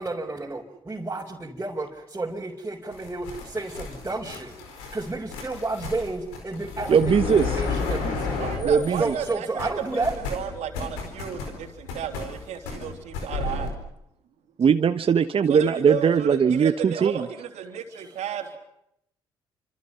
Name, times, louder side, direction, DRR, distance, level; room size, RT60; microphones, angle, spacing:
voice 1, 0.0-4.5 4.9-7.2 7.5-8.4 9.0-10.1, right 2 dB, 20° right, -3 dB, 4.7 m, -31 dB
sound 1, 2.9-9.3 9.6-13.7, left 4 dB, 80° left, 4.6 m, -33 dB
voice 2, 6.9-7.6 8.6-9.1 14.6-17.2, right 6 dB, 45° right, 9 dB, 1.2 m, -20 dB
voice 3, 8.4-13.7 15.5-18.6, right 8 dB, 65° right, 4 dB, 3.5 m, -33 dB
29.5 x 26.5 x 5.7 m, 0.77 s
hypercardioid pair, 45°, 13 cm